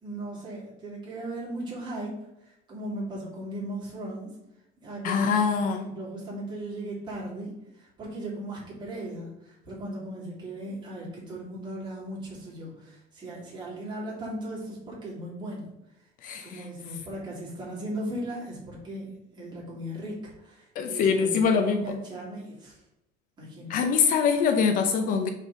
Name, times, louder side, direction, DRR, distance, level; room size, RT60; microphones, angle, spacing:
voice 1, 0.0-2.1 2.7-4.3 4.8-7.5 7.8-15.7 16.4-19.1 19.4-22.8 23.4-23.8, right 1 dB, 25° right, -5 dB, 2.8 m, -37 dB
voice 2, 5.0-5.8 16.2-16.6 20.8-21.9 23.7-25.3, left 6 dB, 50° left, 6 dB, 0.7 m, -24 dB
5.7 x 4.9 x 5.4 m, 0.87 s
cardioid pair, 170°, 18 cm